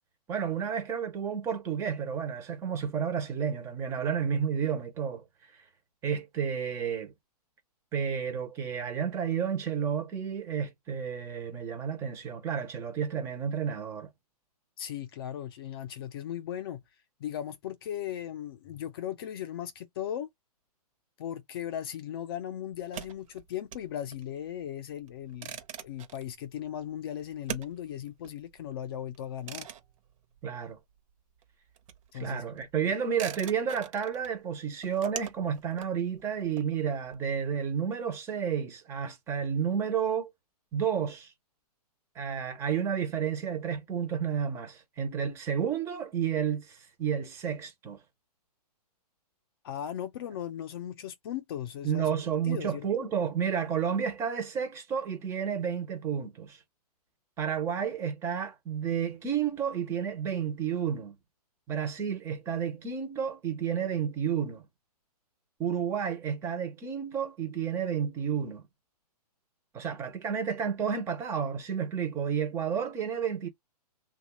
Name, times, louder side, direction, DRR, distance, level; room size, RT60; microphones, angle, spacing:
voice 1, 0.3-5.2 6.0-7.1 7.9-14.1 30.4-30.8 32.2-40.3 40.7-41.3 42.2-48.0 51.8-56.6 57.4-61.1 61.7-64.6 65.6-68.6 69.7-73.5, right 7 dB, 15° right, 0.6 m, -31 dB
voice 2, 14.8-16.8 17.2-20.3 21.2-29.7 32.1-32.4 32.8-32.9 49.6-52.2 52.4-52.9, left 10 dB, 35° left, 0.5 m, -37 dB
sound 1, 22.7-31.1 31.4-37.1, right 9 dB, 55° right, 0.8 m, -44 dB
3.1 x 2.3 x 2.9 m
hypercardioid pair, 160°, 20 cm